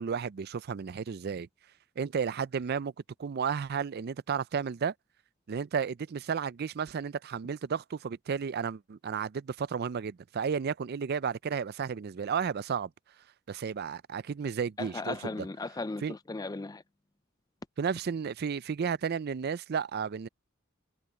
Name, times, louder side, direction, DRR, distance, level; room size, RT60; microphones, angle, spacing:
voice 1, 0.0-1.5 2.0-2.9 3.2-4.9 5.5-12.9 13.5-15.5 16.0-16.1 17.8-20.3, right 6 dB, 50° right, 0.4 m, -33 dB
voice 2, 14.8-16.8, left 3 dB, 20° left, 0.4 m, -36 dB
head